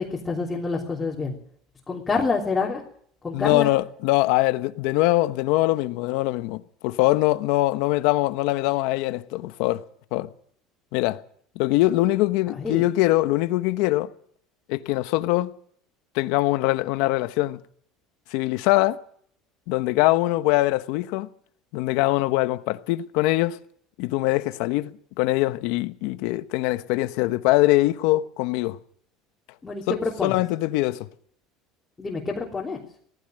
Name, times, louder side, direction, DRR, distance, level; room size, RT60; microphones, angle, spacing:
voice 1, 0.0-1.4 1.9-2.8 3.2-3.7 12.6-12.8 29.6-30.4 32.0-32.8, left 4 dB, 15° left, 3.3 m, -27 dB
voice 2, 3.3-9.8 10.1-10.3 10.9-11.2 11.5-14.1 14.7-15.5 16.1-17.6 18.3-19.0 19.7-21.3 21.7-23.6 24.0-28.8 29.9-31.1, left 18 dB, 70° left, 1.1 m, -23 dB
18.5 x 16.0 x 9.1 m
cardioid pair, 145°, 0 cm